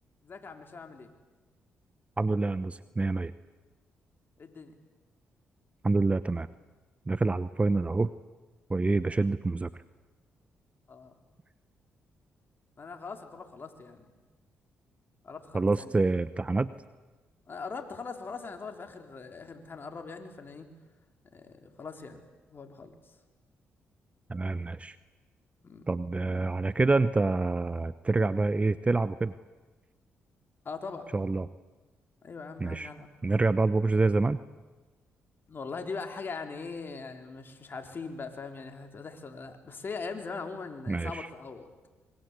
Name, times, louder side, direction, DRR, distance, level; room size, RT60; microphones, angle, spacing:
voice 1, 0.2-1.1 4.4-4.7 10.9-11.2 12.8-14.1 15.2-16.1 17.5-20.7 21.3-23.0 25.6-25.9 30.6-31.0 32.2-33.1 35.5-41.7, left 4 dB, 45° left, 5 dB, 3.9 m, -41 dB
voice 2, 2.2-3.3 5.8-6.5 7.1-8.1 8.7-9.7 15.5-16.7 24.3-25.0 25.9-29.3 31.1-31.5 32.6-32.9 33.2-34.4 40.9-41.3, right 3 dB, 25° right, 14 dB, 0.9 m, -27 dB
26.0 x 23.0 x 8.3 m, 1.2 s
supercardioid pair, 55°, 5 cm